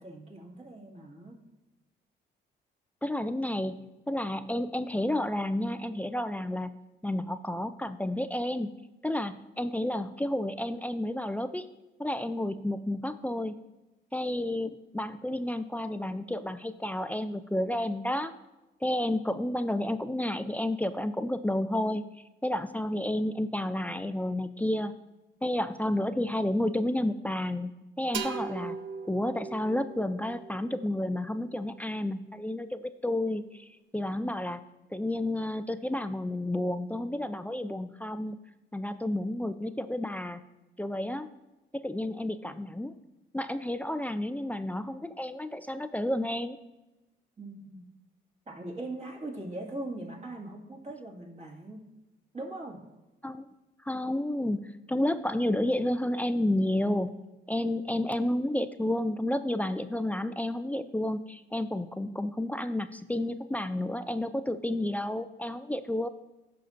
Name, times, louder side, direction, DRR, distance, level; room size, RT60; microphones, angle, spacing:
voice 1, 0.0-1.4 47.4-47.8 48.5-51.8 52.3-52.8, right 2 dB, 35° right, -1 dB, 2.1 m, -40 dB
voice 2, 3.0-6.7 7.0-8.7 9.0-11.7 12.0-13.5 14.1-18.3 18.8-22.0 22.4-24.9 25.4-27.7 28.0-28.8 29.1-34.6 34.9-38.4 38.7-40.4 40.8-41.3 41.7-42.9 43.3-46.6 53.2-53.5 53.8-57.1 57.5-66.1, left 1 dB, 10° left, 10 dB, 0.4 m, -31 dB
sound 1, 28.1-31.8, right 6 dB, 70° right, 0.6 m, -40 dB
14.0 x 5.7 x 2.5 m, 1.0 s
cardioid pair, 90°, 20 cm